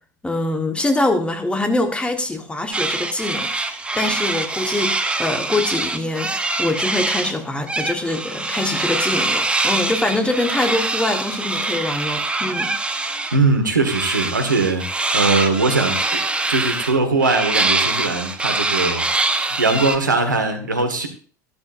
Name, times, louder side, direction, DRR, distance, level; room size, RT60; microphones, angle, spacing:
voice 1, 0.2-12.7, left 2 dB, 10° left, 6 dB, 1.6 m, -24 dB
sound 1, 2.7-7.4 7.7-13.4 13.8-20.0, right 2 dB, 10° right, 1.0 m, -24 dB
voice 2, 13.3-16.2 16.5-19.1 19.6-21.1, right 3 dB, 85° right, 6 dB, 1.6 m, -20 dB
12.5 x 12.5 x 2.6 m, 0.39 s
figure-of-eight pair, 75°, 10 cm